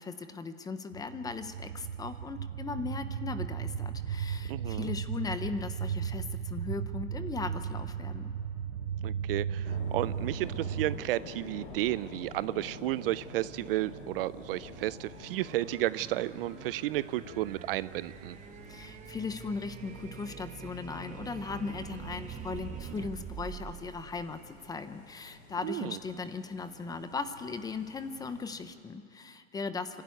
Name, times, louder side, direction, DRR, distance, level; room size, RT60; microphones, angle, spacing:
voice 1, 0.0-8.3 18.7-30.0, left 4 dB, 10° left, 11 dB, 0.6 m, -38 dB
sound 1, 0.9-11.0, right 8 dB, 75° right, 0.9 m, -35 dB
voice 2, 4.5-4.9 9.0-18.4 25.6-26.0, right 16 dB, 50° right, 18 dB, 0.5 m, -33 dB
sound 2, 9.6-28.6, left 3 dB, 75° left, 6.1 m, -49 dB
sound 3, 9.6-24.9, right 8 dB, 20° right, 0.8 m, -47 dB
25.5 x 12.5 x 9.4 m, 2.6 s
hypercardioid pair, 130°, 38 cm